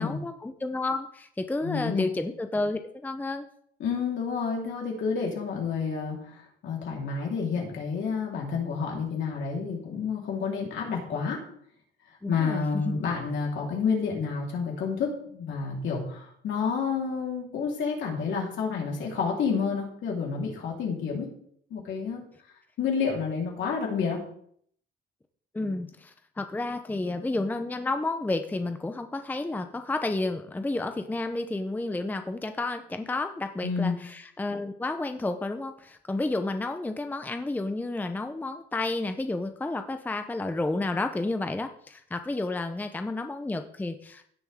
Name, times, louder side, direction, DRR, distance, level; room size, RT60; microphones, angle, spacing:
voice 1, 0.0-3.5 12.2-13.0 25.5-44.3, left 2 dB, 10° left, 7 dB, 0.6 m, -31 dB
voice 2, 1.6-2.1 3.8-11.4 12.3-21.3 21.7-22.2 22.8-24.2 33.6-34.0, left 5 dB, 65° left, -2 dB, 3.9 m, -29 dB
16.5 x 7.2 x 3.6 m, 0.65 s
cardioid pair, 130°, 21 cm